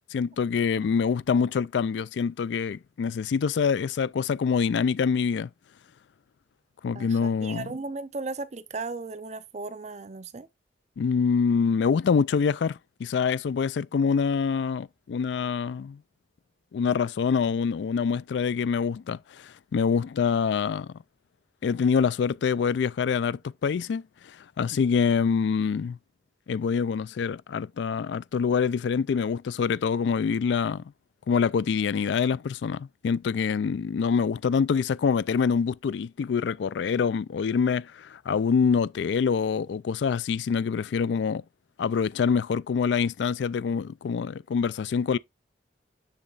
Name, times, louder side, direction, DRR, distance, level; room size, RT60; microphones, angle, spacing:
voice 1, 0.1-5.5 6.8-7.7 11.0-16.0 16.7-20.9 21.6-24.0 24.6-26.0 26.5-30.8 31.3-41.4 41.8-45.2, left 6 dB, 80° left, 0.3 m, -25 dB
voice 2, 6.9-10.5, right 3 dB, 40° right, 0.6 m, -36 dB
7.0 x 6.5 x 2.4 m
head